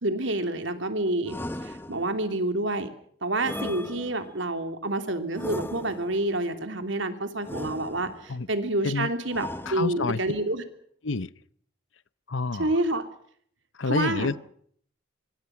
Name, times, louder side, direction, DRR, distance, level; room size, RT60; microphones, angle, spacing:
voice 1, 0.0-1.4 1.6-2.9 3.2-10.6 12.6-13.0 13.9-14.3, right 2 dB, 70° right, 3.1 m, -28 dB
sound 1, 1.3-2.3 3.4-4.5 5.3-6.3 7.4-8.3 9.3-10.3, left 1 dB, 10° left, 1.1 m, -37 dB
voice 2, 9.7-10.2 11.0-11.3 12.3-12.7 13.8-14.4, left 3 dB, 75° left, 0.9 m, -28 dB
25.5 x 24.0 x 6.0 m
head